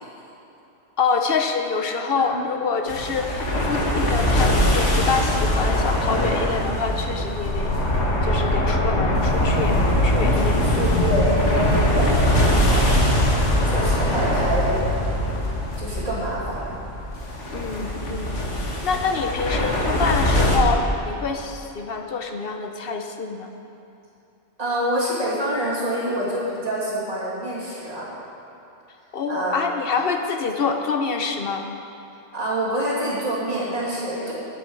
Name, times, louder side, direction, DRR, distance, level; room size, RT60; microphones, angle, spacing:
voice 1, 1.0-7.7 8.2-10.8 17.5-23.5 29.1-31.6 34.2-34.3, left 5 dB, 55° left, 5 dB, 0.9 m, -26 dB
sound 1, 2.9-20.6, left 1 dB, 80° left, 1.9 m, -22 dB
voice 2, 10.5-13.1 13.6-14.8 15.1-15.4 15.8-16.6 24.6-28.1 29.3-29.6 32.3-34.3, right 1 dB, 35° right, -7 dB, 2.8 m, -26 dB
8.4 x 7.5 x 8.7 m, 2.9 s
omnidirectional pair, 1.2 m